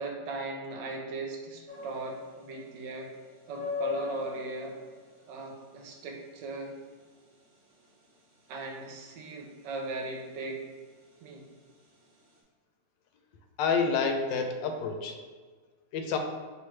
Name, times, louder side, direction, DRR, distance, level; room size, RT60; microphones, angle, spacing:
voice 1, 0.0-3.1 3.5-4.8 5.3-6.8 8.5-10.6 11.2-11.4, right 3 dB, 80° right, 2 dB, 1.3 m, -38 dB
sound 1, 1.7-12.4, left 7 dB, 50° right, 0.9 m, -43 dB
voice 2, 13.6-15.2 15.9-16.2, left 5 dB, 80° left, 4 dB, 1.2 m, -28 dB
4.8 x 3.1 x 3.2 m, 1.5 s
omnidirectional pair, 2.0 m